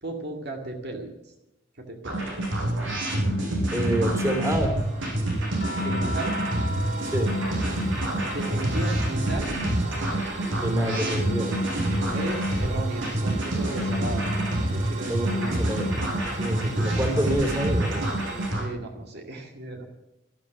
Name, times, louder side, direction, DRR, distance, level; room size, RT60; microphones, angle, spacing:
voice 1, 0.0-1.1 1.8-2.2 5.8-6.4 8.2-9.5 12.1-14.2 14.6-15.6 18.6-19.8, right 2 dB, 60° right, 2 dB, 2.2 m, -35 dB
sound 1, 2.0-18.6, right 1 dB, 85° right, 6.0 m, -27 dB
sound 2, 3.3-18.5, right 3 dB, 40° right, 3.0 m, -40 dB
voice 2, 3.7-4.7 7.0-7.3 10.6-11.5 15.1-16.0 16.3-18.1, right 1 dB, 15° right, 3 dB, 3.1 m, -27 dB
sound 3, 5.6-10.1 10.4-12.1 13.6-13.8, left 1 dB, 60° left, 2.1 m, -40 dB
13.0 x 12.5 x 7.9 m, 0.91 s
head